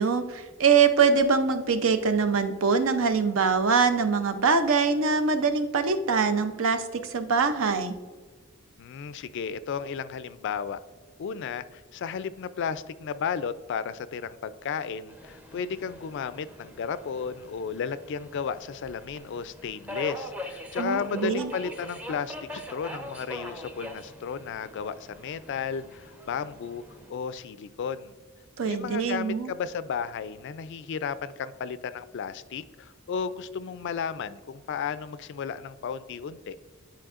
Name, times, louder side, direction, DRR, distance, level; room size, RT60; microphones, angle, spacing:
voice 1, 0.0-7.9 20.8-21.5 28.6-29.5, right 5 dB, 70° right, 9 dB, 0.6 m, -23 dB
voice 2, 8.8-10.8 11.2-26.8 27.1-28.1 28.6-36.6, left 6 dB, 60° left, 14 dB, 0.3 m, -34 dB
Subway metro underground, 15.1-27.1, left 1 dB, 5° right, 0.6 m, -42 dB
10.5 x 4.5 x 2.4 m, 1.4 s
head